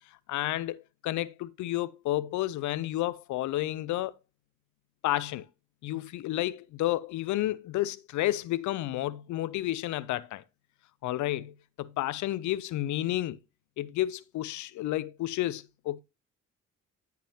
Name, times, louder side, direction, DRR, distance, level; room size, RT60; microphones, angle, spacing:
voice 1, 0.0-4.1 5.0-5.5 5.8-10.4 11.0-13.4 13.8-16.0, left 15 dB, 75° left, 0.5 m, -31 dB
10.0 x 5.8 x 2.8 m
cardioid pair, 90°, 30 cm